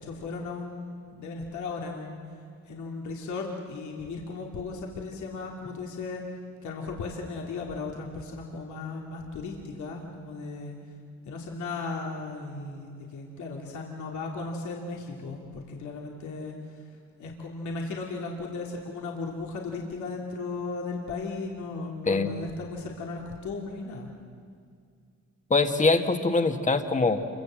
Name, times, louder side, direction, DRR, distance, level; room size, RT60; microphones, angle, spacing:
voice 1, 0.0-2.2 2.7-6.2 6.6-10.8 11.2-16.5 17.2-24.1, left 3 dB, 70° left, -1 dB, 3.0 m, -36 dB
voice 2, 25.5-27.2, left 3 dB, 25° left, 6 dB, 1.9 m, -23 dB
27.5 x 24.0 x 7.7 m, 2.2 s
cardioid pair, 90°, 30 cm